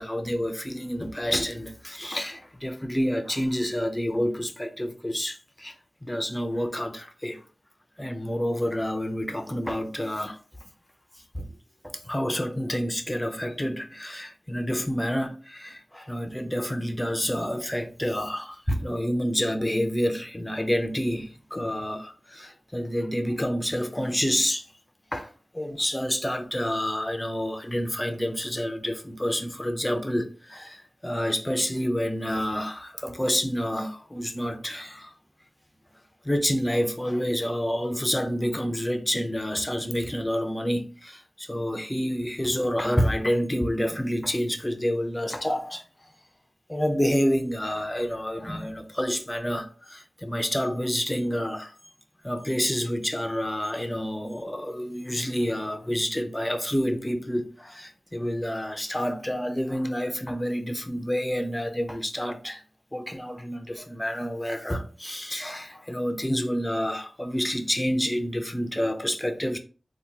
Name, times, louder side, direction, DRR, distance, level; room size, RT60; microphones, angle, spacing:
voice 1, 0.0-5.7 6.0-7.4 8.0-10.4 11.3-11.6 11.8-24.7 25.1-35.1 36.2-45.8 46.7-51.7 52.2-62.6 62.9-69.6, equal, 10° left, 0.5 m, -28 dB
3.4 x 2.2 x 2.7 m
wide cardioid pair, 80°, 0 cm